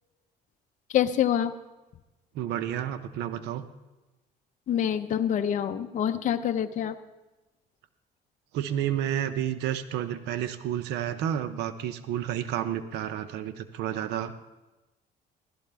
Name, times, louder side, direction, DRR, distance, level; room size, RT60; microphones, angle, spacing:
voice 1, 0.9-1.5 4.7-7.0, left 9 dB, 45° left, 7 dB, 0.6 m, -26 dB
voice 2, 2.4-3.7 8.5-14.3, right 10 dB, 85° right, 11 dB, 0.6 m, -30 dB
15.5 x 12.0 x 3.4 m, 1.1 s
cardioid pair, 110°, 17 cm